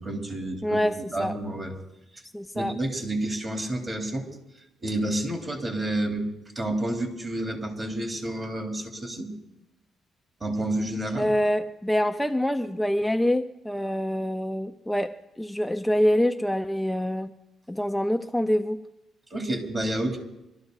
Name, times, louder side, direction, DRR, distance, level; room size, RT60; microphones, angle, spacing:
voice 1, 0.0-0.8 1.1-1.7 2.5-4.3 4.8-6.3 6.6-9.3 10.4-11.3 19.3-20.2, right 1 dB, 30° right, 2 dB, 3.6 m, -29 dB
voice 2, 0.6-1.3 2.3-2.7 11.2-17.3 17.7-18.8, equal, 5° left, 7 dB, 0.5 m, -25 dB
23.5 x 13.0 x 4.1 m, 0.93 s
cardioid pair, 90°, 0 cm